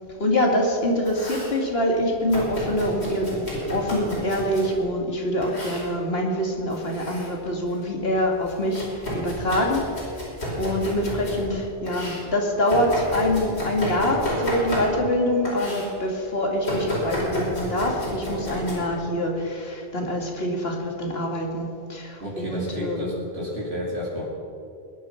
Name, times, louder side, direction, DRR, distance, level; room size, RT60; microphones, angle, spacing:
voice 1, 0.2-9.8 10.1-10.2 10.6-23.0, left 1 dB, 70° left, 0 dB, 2.6 m, -25 dB
Domestic sounds home sounds, 0.8-1.6 2.3-4.7 5.4-5.9 6.7-7.3 7.7-11.4 11.9-15.2 15.5-15.9 16.6-18.7, equal, 90° left, 5.3 m, -31 dB
voice 2, 22.2-24.3, equal, 75° right, -6 dB, 3.1 m, -30 dB
21.0 x 11.0 x 5.8 m, 2.5 s
omnidirectional pair, 1.1 m